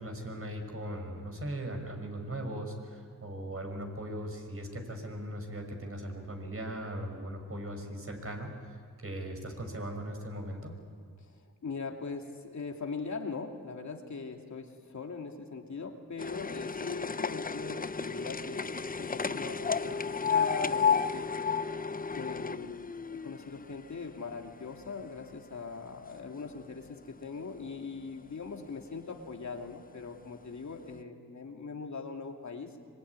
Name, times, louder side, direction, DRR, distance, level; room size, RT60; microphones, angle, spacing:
voice 1, 0.0-10.7, right 1 dB, 45° right, 4 dB, 6.0 m, -39 dB
voice 2, 11.6-21.3 22.1-32.7, left 4 dB, 60° left, 3 dB, 2.8 m, -41 dB
sound 1, 16.2-24.4 24.8-25.7 26.4-26.5 26.8-26.9 27.1-27.2 28.1-28.2 28.8-28.9 29.6-29.7 30.1-30.2, left 6 dB, 25° left, 0.7 m, -32 dB
25.5 x 22.0 x 9.7 m, 2.1 s
cardioid pair, 60°, 33 cm